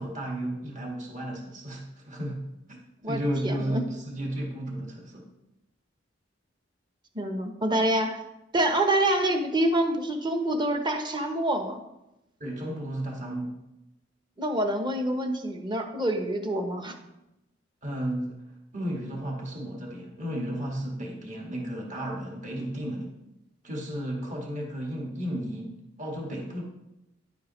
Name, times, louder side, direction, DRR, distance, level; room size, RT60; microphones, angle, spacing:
voice 1, 0.0-2.4 2.7-2.8 3.1-5.2 12.4-13.5 17.8-18.4 18.7-23.1 23.6-25.7 26.0-26.6, right 1 dB, 40° right, -1 dB, 1.7 m, -33 dB
voice 2, 3.0-3.9 7.1-8.2 8.5-11.8 14.4-17.0, right 1 dB, 25° right, 5 dB, 0.9 m, -26 dB
10.5 x 8.3 x 3.1 m, 0.91 s
head